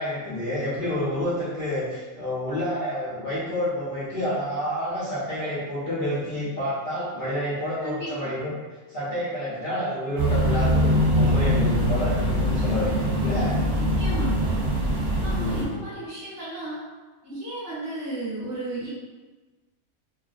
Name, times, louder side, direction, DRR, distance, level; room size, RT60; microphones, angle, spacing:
voice 1, 0.0-8.5 8.9-13.5 15.1-15.7, equal, 50° left, -9 dB, 0.6 m, -29 dB
voice 2, 7.8-8.3 13.7-14.6 15.2-16.8 17.2-18.9, right 2 dB, 15° right, -9 dB, 0.6 m, -34 dB
sound 1, 10.2-15.6, equal, 65° right, 0.4 m, -23 dB
2.4 x 2.2 x 2.4 m, 1.3 s
omnidirectional pair, 1.5 m